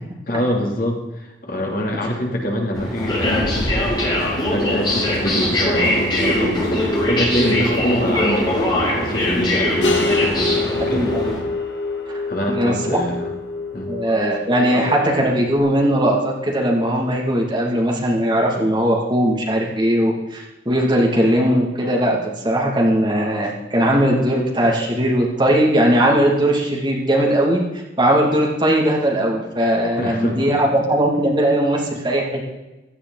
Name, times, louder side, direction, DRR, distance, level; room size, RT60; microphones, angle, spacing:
voice 1, 0.3-3.9 4.2-11.1 12.3-13.3 13.7-13.9 30.0-30.6, equal, 45° left, -1 dB, 3.1 m, -25 dB
sound 1, 2.7-11.4, left 1 dB, 25° left, 4.7 m, -21 dB
sound 2, 9.8-15.6, left 3 dB, 75° left, 2.0 m, -27 dB
voice 2, 10.9-11.4 12.1-12.2 12.5-13.0 13.9-32.5, right 1 dB, 25° right, -1 dB, 2.3 m, -19 dB
16.5 x 13.0 x 4.0 m, 1.1 s
head